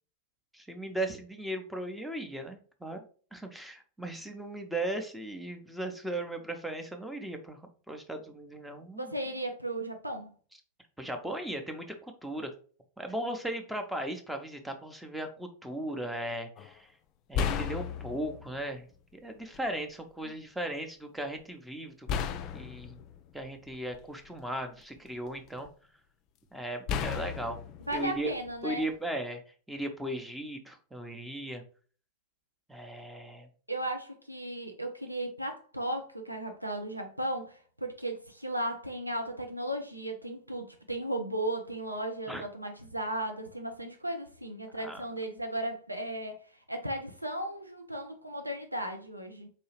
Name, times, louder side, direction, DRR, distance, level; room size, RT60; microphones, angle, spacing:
voice 1, 0.5-3.0 3.3-7.6 7.9-9.1 11.0-12.5 13.0-16.9 17.3-22.1 22.5-23.0 23.3-25.7 26.5-27.6 27.9-28.3 28.6-29.4 29.7-31.6 32.7-33.5 42.3-42.4 44.8-45.0, right 1 dB, 5° right, 0.6 m, -37 dB
voice 2, 9.0-10.3 20.2-20.3 27.9-28.8 33.7-46.4 46.7-49.5, right 1 dB, 90° right, 0.4 m, -35 dB
sound 1, 16.6-16.7 17.3-18.6 19.5-19.7 22.1-24.3 24.8-25.7 26.9-29.0, left 7 dB, 40° left, 0.3 m, -35 dB
4.0 x 2.7 x 2.9 m
figure-of-eight pair, 90°, 0 cm